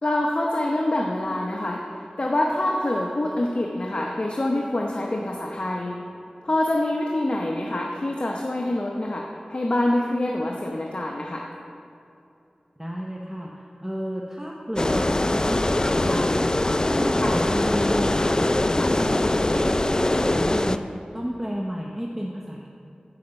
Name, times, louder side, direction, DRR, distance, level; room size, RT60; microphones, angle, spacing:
voice 1, 0.0-1.8 2.2-6.0 6.4-11.4 17.2-17.4, left 1 dB, 50° left, 0 dB, 0.8 m, -25 dB
voice 2, 12.8-16.5 16.9-18.3 18.6-20.9 21.1-22.7, equal, 15° right, -2 dB, 0.9 m, -32 dB
sound 1, 14.8-20.8, left 1 dB, 30° left, 0.4 m, -22 dB
11.0 x 5.1 x 7.0 m, 2.8 s
wide cardioid pair, 50°, 3 cm